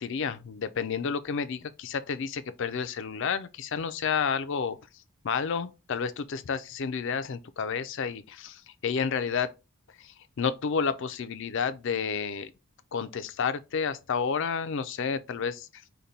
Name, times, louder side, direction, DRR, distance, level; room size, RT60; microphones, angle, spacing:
voice 1, 0.0-4.8 5.2-9.5 10.0-12.5 12.9-15.8, left 6 dB, 55° left, 0.4 m, -30 dB
5.1 x 2.2 x 4.1 m
head